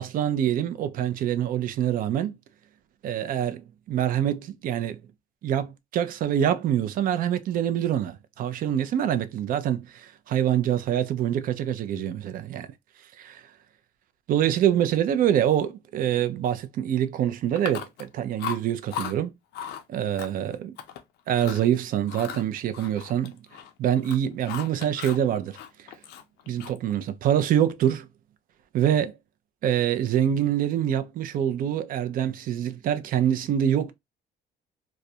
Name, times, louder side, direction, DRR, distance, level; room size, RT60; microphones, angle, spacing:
voice 1, 0.0-2.4 3.0-5.0 5.4-12.7 13.2-13.4 14.3-19.3 19.9-20.8 21.3-23.4 23.8-25.6 26.5-28.1 28.7-29.2 29.6-33.9, right 10 dB, 55° right, 0.4 m, -25 dB
Chewing mastication, 17.6-18.1 18.4-19.1 19.5-19.8 20.2-21.0 21.3-21.7 22.1-23.7 24.0-25.2 25.5-26.9, left 9 dB, 80° left, 0.4 m, -37 dB
2.3 x 2.0 x 2.6 m
cardioid pair, 110°, 17 cm